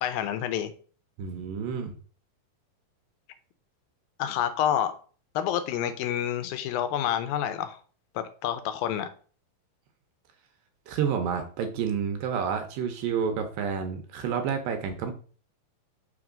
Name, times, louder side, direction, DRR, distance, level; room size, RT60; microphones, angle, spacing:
voice 1, 0.0-0.7 4.2-4.9 5.4-7.8 8.2-9.1, left 10 dB, 80° left, 2.5 m, -28 dB
voice 2, 1.2-1.9 10.9-15.1, right 7 dB, 75° right, 2.4 m, -29 dB
6.0 x 3.5 x 5.1 m
omnidirectional pair, 4.2 m